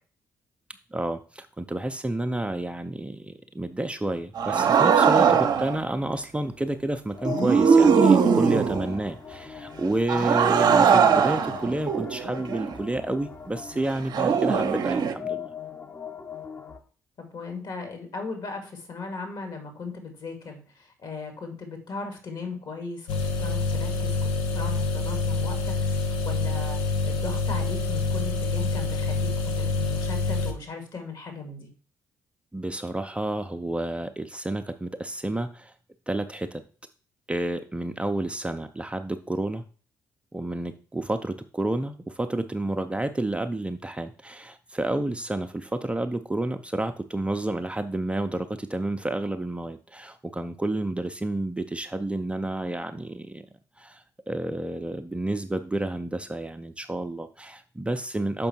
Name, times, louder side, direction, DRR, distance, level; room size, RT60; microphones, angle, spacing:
voice 1, 0.9-15.5 32.5-35.7 36.1-36.6 37.3-39.6 40.3-53.4 53.8-58.5, right 2 dB, 10° right, 7 dB, 0.6 m, -30 dB
sound 1, 4.4-5.8 7.2-9.0 10.1-12.7 14.1-15.1, right 6 dB, 50° right, 0.7 m, -20 dB
sound 2, 7.2-16.8, left 8 dB, 25° left, 1.1 m, -40 dB
voice 2, 17.2-23.1 23.4-29.3 29.6-31.7, left 4 dB, 50° left, 5 dB, 2.2 m, -37 dB
sound 3, 23.1-30.5, left 3 dB, 70° left, 0.9 m, -26 dB
6.6 x 5.2 x 4.4 m, 0.39 s
figure-of-eight pair, 45°, 9 cm